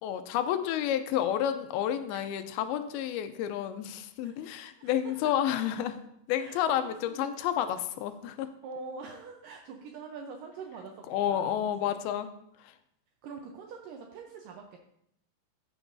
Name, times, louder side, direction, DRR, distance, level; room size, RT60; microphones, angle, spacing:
voice 1, 0.0-6.0 6.3-8.5 11.1-12.3 12.6-12.8, left 10 dB, 85° left, 9 dB, 2.2 m, -30 dB
voice 2, 4.8-5.3 6.4-7.4 8.6-11.9 13.2-14.8, right 4 dB, 85° right, 2 dB, 1.9 m, -45 dB
15.0 x 6.9 x 2.6 m, 0.75 s
omnidirectional pair, 4.9 m